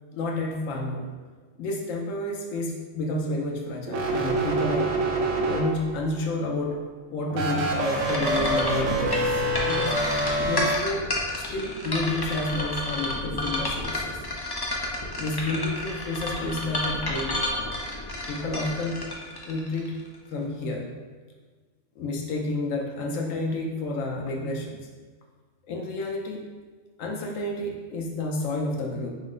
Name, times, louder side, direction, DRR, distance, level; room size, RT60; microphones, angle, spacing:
voice 1, 0.1-1.1 1.6-4.9 5.4-6.8 7.1-9.9 10.4-11.0 11.3-14.2 15.2-17.4 18.3-19.0 19.4-20.0 20.3-20.8 22.0-24.8 25.7-26.5 27.0-29.1, left 2 dB, 90° left, 0 dB, 1.0 m, -30 dB
sound 1, 3.9-6.1 7.3-10.7, right 1 dB, 80° right, 1.0 m, -26 dB
sound 2, 7.6-20.2, left 1 dB, 35° left, 0.4 m, -31 dB
5.6 x 2.1 x 3.7 m, 1.4 s
omnidirectional pair, 1.3 m